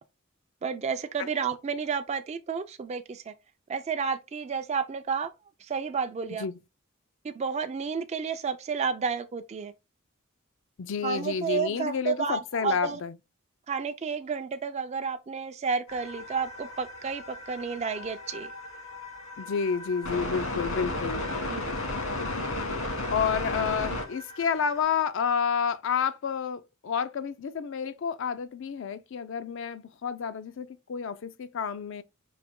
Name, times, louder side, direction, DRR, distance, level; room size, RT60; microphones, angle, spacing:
voice 1, 0.6-3.3 3.7-5.3 5.6-6.4 7.2-9.7 11.0-13.0 13.7-18.5 21.5-21.7, right 5 dB, 30° right, 0.3 m, -31 dB
voice 2, 10.8-13.2 19.4-21.2 23.1-32.0, left 6 dB, 65° left, 0.4 m, -30 dB
sound 1, 15.9-24.8, left 2 dB, 85° left, 2.2 m, -34 dB
4.8 x 2.9 x 3.6 m
head